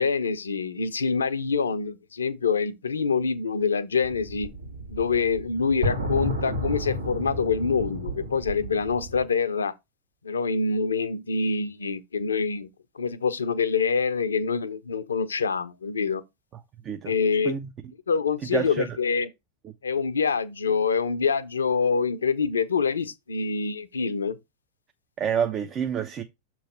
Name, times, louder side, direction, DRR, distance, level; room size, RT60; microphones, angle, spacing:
voice 1, 0.0-4.5 4.9-9.7 10.2-12.7 12.9-16.2 17.0-17.6 18.1-19.3 19.8-24.4, left 5 dB, 70° left, 0.6 m, -25 dB
sound 1, 4.0-9.3, equal, 80° right, 1.6 m, -32 dB
voice 2, 18.5-18.9 25.2-26.2, right 7 dB, 30° right, 0.5 m, -27 dB
6.9 x 3.1 x 5.3 m
figure-of-eight pair, 90°, 0 cm